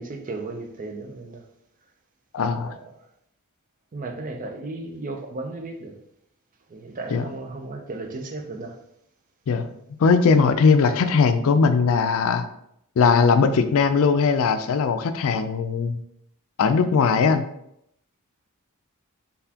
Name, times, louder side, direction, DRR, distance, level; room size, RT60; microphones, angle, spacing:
voice 1, 0.0-1.4 2.4-2.7 3.9-5.9 6.7-8.7, right 2 dB, 35° right, 0.5 m, -35 dB
voice 2, 2.3-2.8 7.1-7.3 9.5-9.7 10.0-12.4 13.0-16.0 16.6-17.4, left 5 dB, 65° left, 0.4 m, -19 dB
4.0 x 3.6 x 2.8 m
head